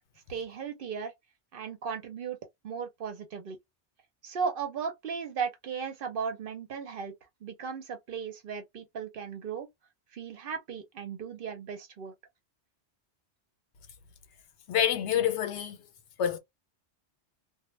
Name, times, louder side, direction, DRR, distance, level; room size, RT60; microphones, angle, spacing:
voice 1, 0.3-1.1 1.5-2.4 2.6-3.6 4.2-7.1 7.4-9.7 10.1-12.1, right 6 dB, 60° right, 0.7 m, -36 dB
voice 2, 14.7-15.9 16.2-16.4, left 9 dB, 85° left, 0.9 m, -27 dB
2.1 x 2.0 x 3.0 m
omnidirectional pair, 1.1 m